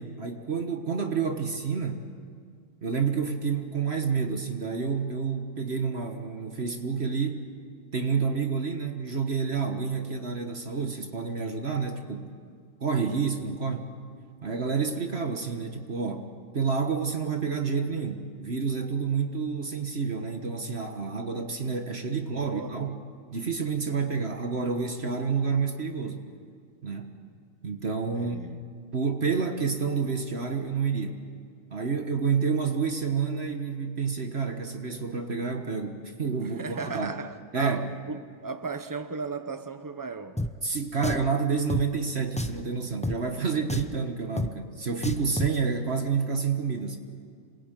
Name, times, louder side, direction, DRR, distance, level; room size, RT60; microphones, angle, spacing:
voice 1, 0.0-2.0 2.8-7.4 7.9-12.3 12.8-13.8 14.4-16.3 16.5-22.9 23.3-26.2 26.8-27.1 27.6-28.4 28.9-31.2 31.7-37.1 37.5-37.9 40.6-47.0, right 5 dB, 50° right, 1.6 m, -29 dB
voice 2, 22.4-23.0 28.1-28.6 36.4-40.5, right 4 dB, 15° right, 0.9 m, -36 dB
Drum, 40.4-40.5 41.0-41.3 41.7-41.8 42.4-42.6 43.0-43.2 43.7-44.0 44.4-44.5 45.0-45.6, left 1 dB, 10° left, 0.3 m, -30 dB
26.5 x 21.0 x 9.1 m
omnidirectional pair, 1.4 m